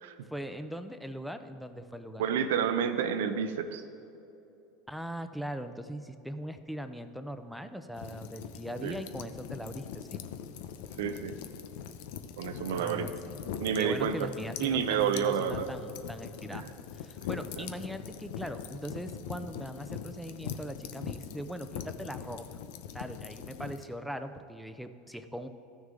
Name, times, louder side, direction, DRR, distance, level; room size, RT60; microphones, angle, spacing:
voice 1, 0.3-2.2 4.9-10.2 12.7-13.4 13.8-16.6 16.9-22.5 22.9-25.5, equal, ahead, 9 dB, 0.6 m, -40 dB
voice 2, 2.2-3.8 8.8-9.0 11.0-11.4 12.4-13.1 13.6-14.3 14.6-15.7 16.5-16.7 17.6-17.7, right 8 dB, 80° right, 10 dB, 0.6 m, -29 dB
sound 1, 8.0-23.8, left 8 dB, 75° left, 0.6 m, -42 dB
14.0 x 6.3 x 3.8 m, 2.9 s
supercardioid pair, 100°, 0 cm